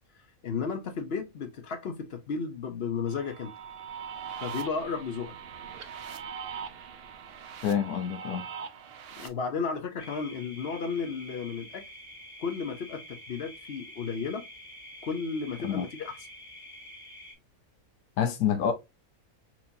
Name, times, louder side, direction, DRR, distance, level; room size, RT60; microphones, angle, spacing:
voice 1, 0.4-3.5 4.4-5.3 9.2-11.8 12.4-14.4 15.0-16.2, left 5 dB, 55° left, 0.8 m, -33 dB
sound 1, 3.1-9.3, right 7 dB, 60° right, 0.7 m, -41 dB
voice 2, 7.6-8.4 15.6-15.8 18.2-18.7, left 8 dB, 90° left, 1.1 m, -27 dB
sound 2, 10.0-17.3, left 1 dB, 35° left, 2.1 m, -47 dB
4.4 x 2.8 x 2.5 m
omnidirectional pair, 1.5 m